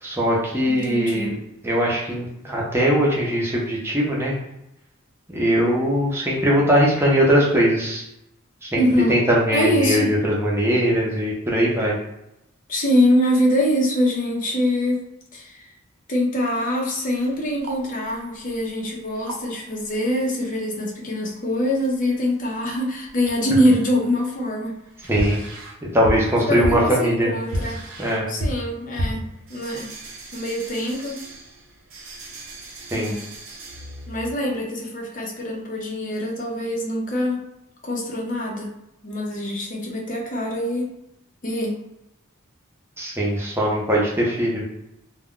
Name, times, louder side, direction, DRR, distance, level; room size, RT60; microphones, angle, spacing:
voice 1, 0.0-1.3 1.6-4.3 5.3-8.1 8.6-8.8 9.1-12.0 25.1-25.4 25.8-27.3 28.0-28.2 32.9-33.1 43.0-44.6, equal, 10° right, -4 dB, 0.6 m, -20 dB
voice 2, 0.7-1.3 8.8-9.2 9.5-10.1 12.7-15.0 15.3-15.7 16.1-24.7 26.2-27.8 28.3-29.9 30.3-31.2 32.9-33.2 34.1-37.4 37.8-38.7 39.0-40.9 41.4-41.8, left 1 dB, 40° left, -1 dB, 0.6 m, -24 dB
sound 1, 17.1-20.1 20.4-20.5 20.7-20.8 21.6-22.4 22.7-23.5 23.8-34.3, equal, 75° right, 0.7 m, -33 dB
2.2 x 2.1 x 3.6 m, 0.86 s
head